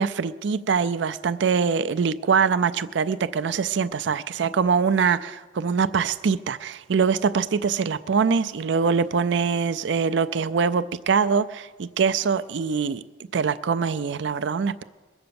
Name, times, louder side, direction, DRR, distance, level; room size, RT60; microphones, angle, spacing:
voice 1, 0.0-13.0 13.3-14.8, right 5 dB, 70° right, 12 dB, 0.4 m, -23 dB
21.5 x 7.9 x 7.0 m, 1.3 s
head